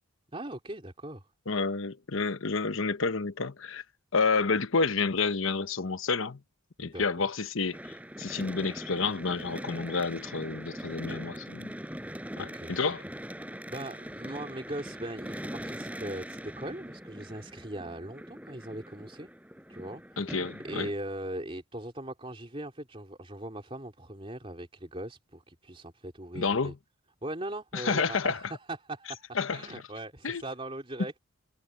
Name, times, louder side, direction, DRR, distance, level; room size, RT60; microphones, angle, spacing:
voice 1, 0.3-1.3 6.8-7.3 12.4-12.7 13.7-19.3 19.7-20.4 20.6-26.7 27.2-31.2, right 1 dB, 25° right, 3.5 m, -40 dB
voice 2, 1.5-3.8 4.1-6.4 6.8-11.7 12.4-13.0 20.2-20.9 26.3-26.8 27.7-28.4 29.3-29.8 30.2-30.4, left 4 dB, 70° left, 1.0 m, -29 dB
sound 1, 7.7-20.9, equal, 5° right, 7.3 m, -42 dB
head